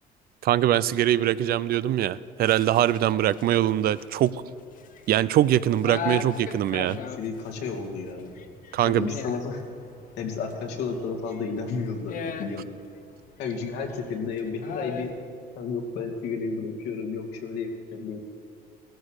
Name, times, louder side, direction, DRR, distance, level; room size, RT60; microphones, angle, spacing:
voice 1, 0.4-4.3 5.1-7.0 8.7-9.1, right 12 dB, 65° right, 17 dB, 0.5 m, -22 dB
sound 1, 2.4-15.2, left 6 dB, 55° left, 1.1 m, -39 dB
voice 2, 6.9-8.3 8.8-9.6 10.2-12.7 13.4-15.1 15.6-18.2, left 4 dB, 85° left, 2 dB, 2.4 m, -32 dB
16.5 x 13.5 x 6.5 m, 2.4 s
cardioid pair, 110°, 17 cm